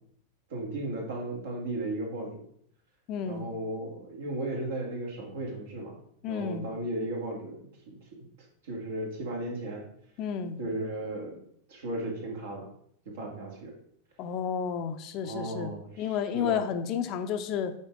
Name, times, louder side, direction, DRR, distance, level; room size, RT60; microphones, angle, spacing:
voice 1, 0.5-2.4 3.2-6.0 6.3-8.0 8.6-9.8 10.6-11.4 11.7-12.7 13.1-13.7 15.2-16.6, right 1 dB, 60° right, 0 dB, 2.3 m, -35 dB
voice 2, 3.1-3.5 6.2-6.7 10.2-10.6 14.2-15.7 16.0-17.7, left 7 dB, 40° left, 8 dB, 0.7 m, -31 dB
8.2 x 4.4 x 4.9 m, 0.67 s
figure-of-eight pair, 90°, 0 cm